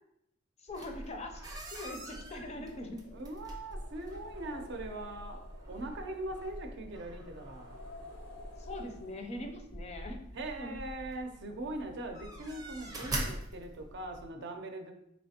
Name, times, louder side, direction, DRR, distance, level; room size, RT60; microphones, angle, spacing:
voice 1, 0.6-1.4 1.7-3.0 8.6-10.3 10.6-10.8, left 1 dB, 35° left, 4 dB, 0.4 m, -42 dB
sound 1, 0.7-14.3, right 1 dB, 20° right, 0.6 m, -44 dB
sound 2, 1.9-9.5, left 1 dB, 90° left, 0.7 m, -51 dB
voice 2, 3.1-7.8 10.3-14.9, right 2 dB, 60° right, 5 dB, 0.5 m, -41 dB
4.3 x 3.2 x 2.8 m, 0.80 s
head